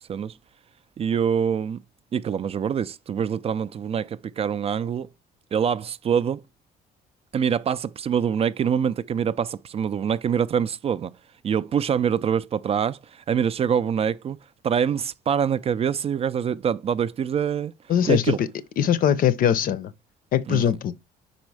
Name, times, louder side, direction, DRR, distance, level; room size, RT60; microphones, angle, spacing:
voice 1, 1.0-1.8 2.1-5.1 5.5-6.4 7.3-11.2 11.4-14.4 14.6-17.7 18.1-18.4 20.5-20.6, right 7 dB, 35° right, 0.4 m, -25 dB
voice 2, 17.9-18.5 18.8-19.9 20.3-20.9, left 9 dB, 55° left, 0.6 m, -21 dB
5.3 x 4.2 x 4.7 m
cardioid pair, 110°, 17 cm